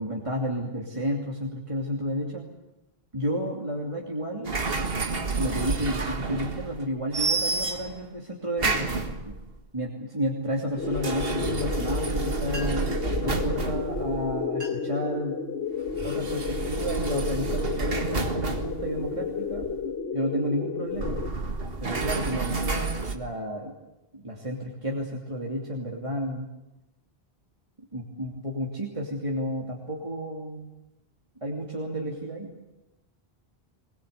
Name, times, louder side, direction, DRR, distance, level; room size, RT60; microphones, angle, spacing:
voice 1, 0.0-2.5 3.1-4.8 5.3-9.4 9.7-12.9 13.2-15.4 16.0-19.7 20.1-21.2 21.8-23.7 24.1-26.5 27.9-30.7 31.4-32.5, equal, 30° right, -1 dB, 2.9 m, -31 dB
sound 1, 4.5-6.9 7.1-8.1 8.6-9.5 10.8-14.4 15.9-19.8 20.9-23.2, right 4 dB, 70° right, 1.9 m, -30 dB
sound 2, 10.8-21.3, left 6 dB, 90° left, 1.4 m, -32 dB
sound 3, 12.4-13.0 13.9-14.1 14.4-15.0 15.5-15.9 16.5-16.7 17.3-18.5, equal, 50° right, 4.6 m, -45 dB
22.0 x 21.0 x 8.3 m, 0.95 s
omnidirectional pair, 1.0 m